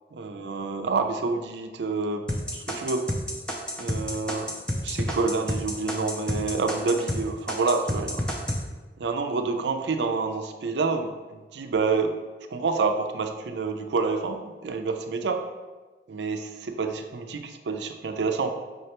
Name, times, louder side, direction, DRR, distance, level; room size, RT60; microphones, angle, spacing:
voice 1, 0.1-2.3 2.5-3.1 3.8-4.5 4.8-8.2 9.0-12.2 12.5-15.4 16.1-18.5, right 4 dB, 80° right, 6 dB, 0.4 m, -28 dB
sound 1, 2.3-7.2 7.5-8.6, equal, 5° left, 0.4 m, -29 dB
5.6 x 3.2 x 2.9 m, 1.3 s
head